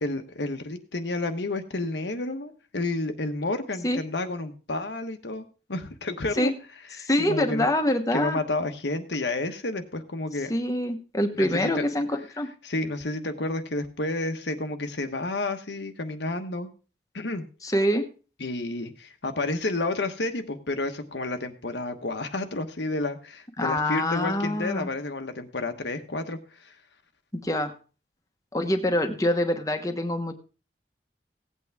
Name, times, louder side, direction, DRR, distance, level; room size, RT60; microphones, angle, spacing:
voice 1, 0.0-6.5 6.9-7.7 8.1-10.5 11.4-11.8 12.6-16.7 17.1-17.4 18.4-26.7, left 2 dB, 85° left, 7 dB, 1.2 m, -30 dB
voice 2, 7.0-8.4 10.5-12.5 17.6-18.1 23.6-24.9 27.3-27.7 28.5-30.3, left 1 dB, 20° left, 6 dB, 1.1 m, -25 dB
16.5 x 8.4 x 3.5 m, 0.36 s
head